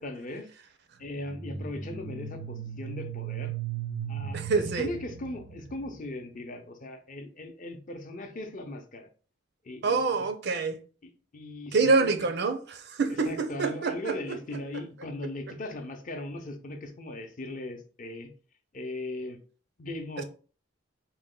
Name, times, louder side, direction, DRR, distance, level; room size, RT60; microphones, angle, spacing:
voice 1, 0.0-0.5 1.0-3.5 4.1-9.1 9.6-10.3 11.0-12.1 13.2-18.3 18.7-19.4 19.8-20.2, left 1 dB, 45° left, 0.6 m, -38 dB
sound 1, 1.2-6.0, right 8 dB, 85° right, 0.9 m, -37 dB
voice 2, 4.3-4.9 9.8-10.8 11.7-14.2 20.2-20.3, right 4 dB, 55° right, 0.5 m, -26 dB
4.0 x 2.1 x 3.7 m
head